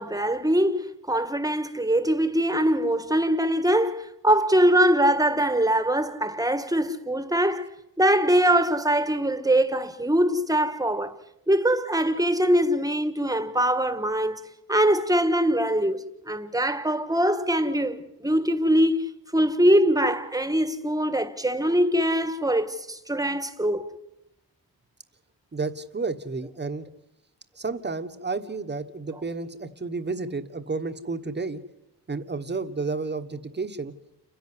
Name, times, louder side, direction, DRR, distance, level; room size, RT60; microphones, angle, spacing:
voice 1, 0.0-7.7 8.0-11.2 11.5-14.4 14.7-23.9, right 1 dB, 10° right, 1.6 m, -23 dB
voice 2, 25.5-26.9 27.6-31.6 32.1-33.9, right 3 dB, 25° right, 1.5 m, -31 dB
29.5 x 11.0 x 9.8 m
wide cardioid pair, 125°, 40 cm